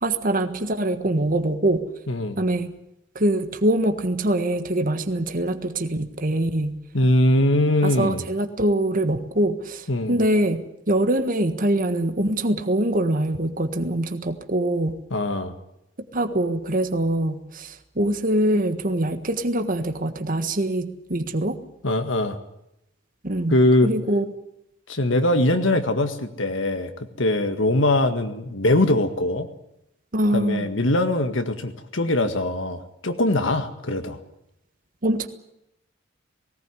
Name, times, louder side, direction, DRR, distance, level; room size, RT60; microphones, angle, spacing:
voice 1, 0.0-1.9 2.4-2.7 3.1-6.8 7.8-15.0 16.1-21.6 23.2-23.6 23.8-24.3 30.1-30.7 35.0-35.3, right 1 dB, 45° right, 8 dB, 1.5 m, -23 dB
voice 2, 2.1-2.4 6.9-8.3 9.9-10.2 15.1-15.5 21.8-22.4 23.5-23.9 24.9-29.5 30.3-34.2, left 1 dB, 70° left, 7 dB, 1.8 m, -22 dB
19.0 x 18.0 x 9.9 m, 0.83 s
head